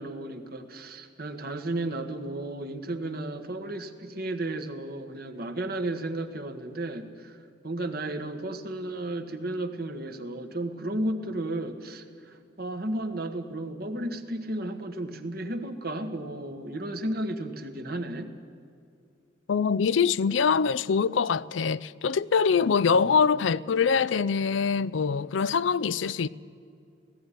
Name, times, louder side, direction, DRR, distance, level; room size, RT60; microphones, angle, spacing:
voice 1, 0.0-7.4 7.6-18.3 22.8-23.1, right 1 dB, 50° right, 1.4 m, -33 dB
voice 2, 19.5-26.3, left 6 dB, 80° left, 0.5 m, -24 dB
17.5 x 15.0 x 10.0 m
head